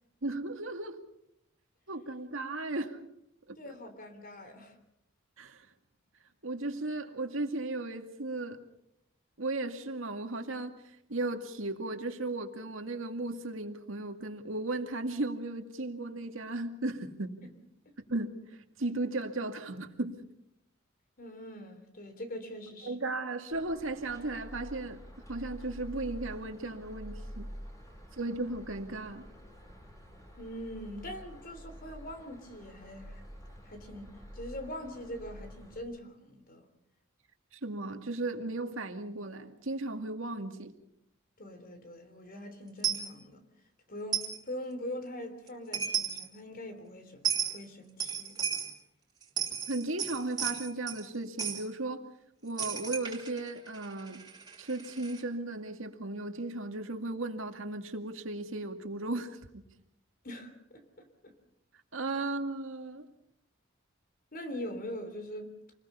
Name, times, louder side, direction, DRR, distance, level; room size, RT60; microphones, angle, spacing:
voice 1, 0.2-1.0 1.9-3.0 3.5-3.6 5.4-5.7 6.4-8.6 9.4-10.7 11.1-17.4 18.1-18.3 18.8-20.2 22.8-25.0 25.3-27.5 28.2-29.3 37.5-40.7 49.7-52.0 52.4-54.2 54.6-59.6 61.9-63.1, right 2 dB, 75° right, 2.2 m, -35 dB
voice 2, 3.6-4.8 17.4-17.5 21.2-23.0 30.4-33.2 33.6-36.6 41.4-43.4 43.9-48.5 60.2-61.0 64.3-65.6, left 1 dB, 45° left, 3.6 m, -43 dB
sound 1, 23.5-35.8, equal, 15° left, 5.6 m, -48 dB
Coin (dropping), 42.8-43.1 44.1-44.4 45.5-45.6 45.7-46.3 47.2-47.6 48.0-48.8 49.2-51.1 51.4-51.6 52.6-55.2, right 8 dB, 20° right, 3.7 m, -34 dB
28.0 x 20.5 x 5.6 m
head